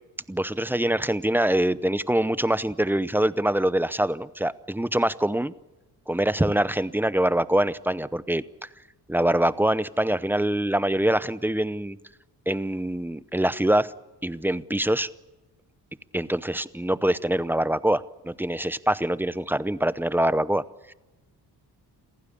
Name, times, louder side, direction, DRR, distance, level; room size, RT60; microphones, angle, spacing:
voice 1, 0.3-5.5 6.1-8.4 9.1-12.0 12.5-13.9 14.2-15.1 16.1-20.6 20.9-21.0, right 1 dB, 5° right, 16 dB, 0.7 m, -24 dB
28.0 x 15.0 x 8.6 m, 1.1 s
cardioid pair, 115°, 39 cm